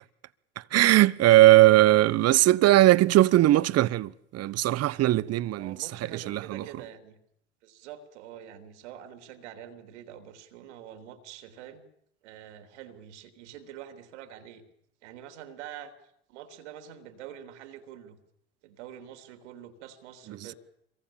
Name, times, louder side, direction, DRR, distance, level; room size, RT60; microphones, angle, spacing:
voice 1, 0.6-6.6, right 15 dB, 45° right, 1.0 m, -20 dB
voice 2, 5.5-7.2 7.6-11.8 12.2-14.6 15.0-15.9 16.3-18.2 18.6-20.5, right 10 dB, 75° right, 3.4 m, -45 dB
27.0 x 23.0 x 7.3 m
hypercardioid pair, 75°, 35 cm